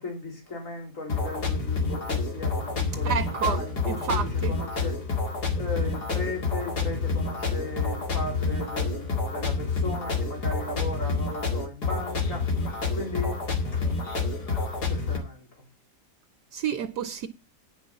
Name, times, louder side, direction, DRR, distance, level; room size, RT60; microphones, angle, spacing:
voice 1, 0.0-3.1 3.4-5.0 5.6-12.5 12.9-13.4 14.9-15.7, left 2 dB, 50° left, 4.1 m, -36 dB
sound 1, 1.1-15.2, left 4 dB, 70° left, 2.7 m, -28 dB
voice 2, 3.0-3.6 3.9-4.5 16.5-17.3, right 8 dB, 75° right, 1.3 m, -29 dB
9.8 x 6.2 x 7.2 m
omnidirectional pair, 1.8 m